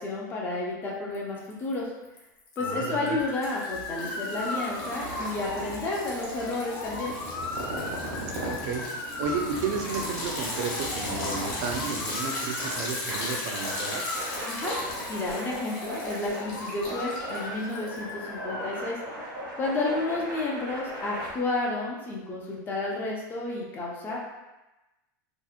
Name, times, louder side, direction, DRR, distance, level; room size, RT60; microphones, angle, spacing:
voice 1, 0.0-1.9 2.6-7.2 14.5-14.8 15.1-19.0 19.6-24.2, left 2 dB, 20° left, -3 dB, 0.3 m, -31 dB
Liquid, 1.1-1.7 2.1-18.2, left 2 dB, 45° left, 0.7 m, -38 dB
Motor vehicle (road) / Siren, 2.6-18.8, left 2 dB, 80° left, 0.5 m, -37 dB
voice 2, 2.6-3.2 8.4-8.9 9.2-14.0, right 5 dB, 55° right, 2 dB, 0.4 m, -33 dB
sound 1, 4.3-21.3, right 1 dB, 90° right, 1.0 m, -38 dB
2.8 x 2.0 x 2.4 m, 1.0 s
supercardioid pair, 155°, 11 cm